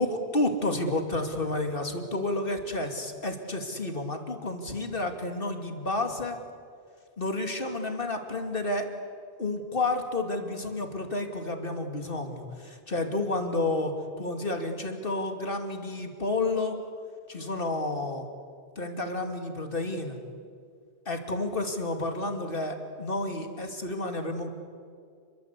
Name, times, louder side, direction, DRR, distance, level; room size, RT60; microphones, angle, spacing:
voice 1, 0.0-6.4 7.2-8.9 9.4-16.8 17.3-18.3 18.8-20.2 21.1-24.5, left 2 dB, 55° left, 5 dB, 2.8 m, -30 dB
29.5 x 22.5 x 8.4 m, 2.3 s
omnidirectional pair, 1.1 m